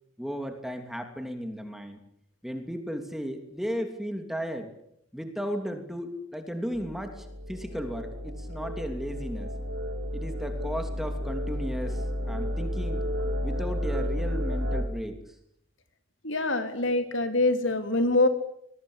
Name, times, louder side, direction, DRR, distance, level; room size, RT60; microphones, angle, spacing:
voice 1, 0.2-2.0 2.4-4.7 5.1-9.5 10.1-13.0 13.4-15.2, equal, ahead, 5 dB, 3.0 m, -35 dB
sound 1, 6.7-14.8, equal, 75° right, 6.0 m, -32 dB
voice 2, 16.2-18.3, left 2 dB, 75° left, 7 dB, 3.7 m, -24 dB
25.5 x 22.0 x 8.7 m, 0.74 s
head